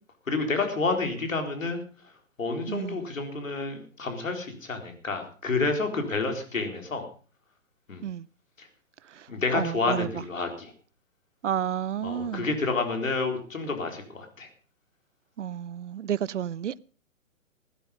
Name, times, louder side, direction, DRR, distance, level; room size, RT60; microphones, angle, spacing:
voice 1, 0.3-1.8 2.4-7.0 7.9-8.0 8.6-8.7 9.3-10.7 12.0-14.5, left 3 dB, 75° left, 4.2 m, -29 dB
voice 2, 2.7-3.0 8.0-8.3 9.5-10.2 11.4-12.5 15.4-16.8, right 9 dB, 60° right, 0.6 m, -31 dB
16.5 x 11.5 x 5.4 m
figure-of-eight pair, 125°, 40 cm